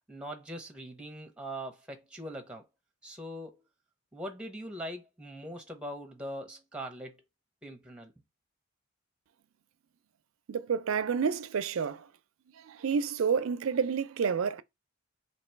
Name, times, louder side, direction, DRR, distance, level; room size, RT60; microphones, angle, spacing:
voice 1, 0.1-2.7 3.0-3.6 4.1-7.2 7.6-8.1, equal, 5° right, 0.8 m, -41 dB
voice 2, 10.5-12.1 12.6-14.6, right 6 dB, 75° right, 0.4 m, -29 dB
2.9 x 2.8 x 4.4 m
head